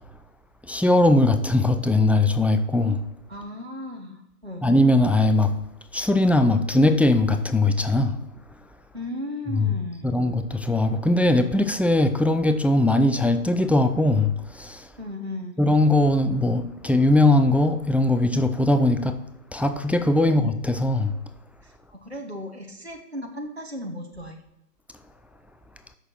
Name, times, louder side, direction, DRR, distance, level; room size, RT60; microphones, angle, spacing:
voice 1, 0.7-3.0 4.6-5.5 5.9-8.2 9.5-9.7 10.0-14.9 15.6-19.2 19.5-21.1, left 2 dB, 5° right, 0.4 m, -20 dB
voice 2, 3.3-4.7 8.9-10.2 15.0-15.6 20.2-20.4 21.6-24.4, left 1 dB, 40° right, 0.7 m, -36 dB
7.5 x 6.3 x 4.4 m
figure-of-eight pair, 175°, 49 cm